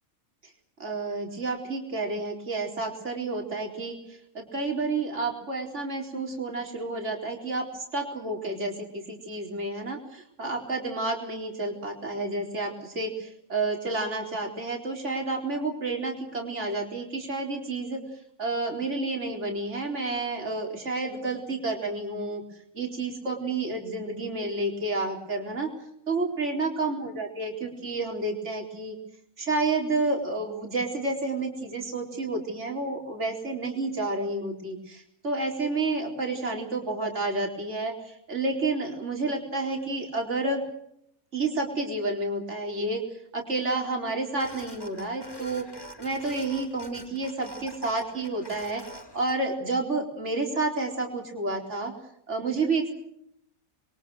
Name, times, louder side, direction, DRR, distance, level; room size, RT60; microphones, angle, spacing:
voice 1, 0.8-18.0 18.4-25.7 26.1-29.0 29.4-40.6 41.3-48.8 49.1-51.9 52.3-52.9, right 3 dB, 50° right, 1 dB, 4.7 m, -30 dB
sound 1, 44.4-49.3, equal, 15° left, 3.5 m, -45 dB
28.5 x 23.0 x 6.4 m, 0.74 s
omnidirectional pair, 1.5 m